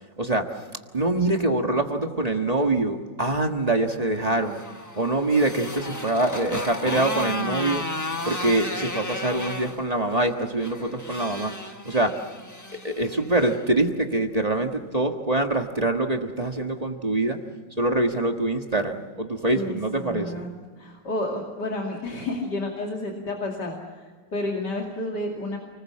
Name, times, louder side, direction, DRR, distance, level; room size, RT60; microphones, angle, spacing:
voice 1, 0.2-0.5 0.9-4.6 5.0-7.9 8.2-11.5 11.8-12.1 12.8-17.4 17.8-20.5, right 2 dB, 20° right, 4 dB, 1.4 m, -24 dB
Motorcycle, 4.2-13.6, left 2 dB, 15° left, 0.9 m, -34 dB
voice 2, 19.5-20.5 20.8-25.6, left 2 dB, 65° left, 0 dB, 3.2 m, -31 dB
29.5 x 20.0 x 7.4 m, 1.5 s
omnidirectional pair, 2.0 m